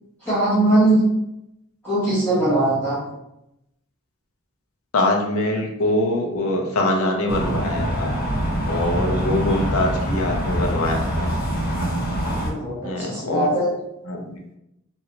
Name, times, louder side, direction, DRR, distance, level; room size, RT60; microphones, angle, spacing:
voice 1, 0.2-1.0 1.8-3.0 12.3-13.7, right 1 dB, 10° left, -12 dB, 1.1 m, -20 dB
voice 2, 4.9-8.1 8.7-11.3 12.8-13.5 14.1-14.4, left 1 dB, 70° left, 1 dB, 0.6 m, -23 dB
sound 1, 7.3-12.5, equal, 45° left, 1.0 m, -24 dB
2.9 x 2.6 x 2.8 m, 0.84 s
head